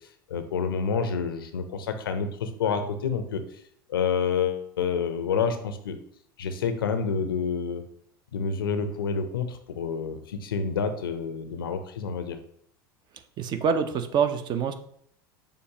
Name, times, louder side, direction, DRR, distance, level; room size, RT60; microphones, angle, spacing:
voice 1, 0.3-3.4 3.9-6.0 6.4-7.8 8.3-12.4, left 6 dB, 85° left, 9 dB, 0.5 m, -28 dB
voice 2, 13.4-14.7, right 6 dB, 40° right, 9 dB, 0.6 m, -25 dB
6.6 x 2.5 x 2.8 m, 0.66 s
hypercardioid pair, 80°, 12 cm